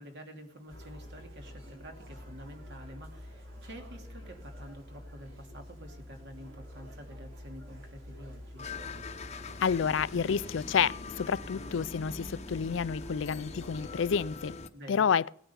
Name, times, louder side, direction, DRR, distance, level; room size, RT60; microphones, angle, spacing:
voice 1, 0.0-8.6 14.7-15.1, equal, 60° right, 2.6 m, -48 dB
sound 1, 0.7-14.4, left 1 dB, 90° right, 3.8 m, -48 dB
sound 2, 8.6-14.7, left 3 dB, 35° left, 0.8 m, -43 dB
voice 2, 9.6-14.6 14.9-15.3, left 7 dB, 70° left, 0.4 m, -29 dB
18.0 x 9.1 x 5.5 m
head